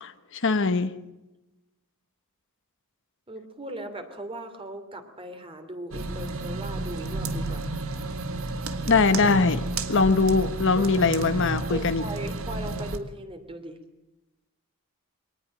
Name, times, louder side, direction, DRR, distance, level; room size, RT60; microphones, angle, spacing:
voice 1, 0.0-0.9 8.9-12.0, left 4 dB, 60° left, 11 dB, 1.1 m, -22 dB
voice 2, 3.3-7.6 10.7-11.2 11.7-13.8, right 1 dB, 25° right, 8 dB, 2.8 m, -38 dB
sound 1, 5.9-13.0, right 2 dB, 70° right, 1.8 m, -31 dB
23.5 x 19.0 x 7.7 m, 1.0 s
head